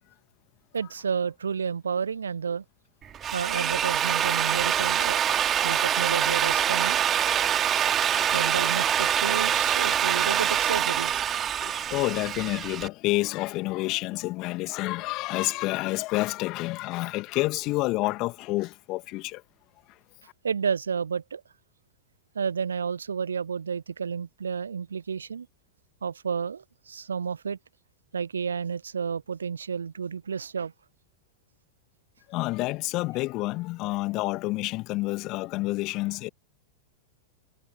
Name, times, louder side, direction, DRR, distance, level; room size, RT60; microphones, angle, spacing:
voice 1, 0.7-2.6 3.3-7.0 8.3-11.6 20.4-21.4 22.3-25.5 26.0-27.6 28.1-30.7, right 6 dB, 70° right, 1.1 m, -31 dB
Drill, 3.0-12.9, right 9 dB, 25° right, 2.7 m, -25 dB
voice 2, 8.1-8.5 11.5-19.4 32.3-36.3, left 21 dB, 40° left, 2.4 m, -29 dB
figure-of-eight pair, 90°, 0 cm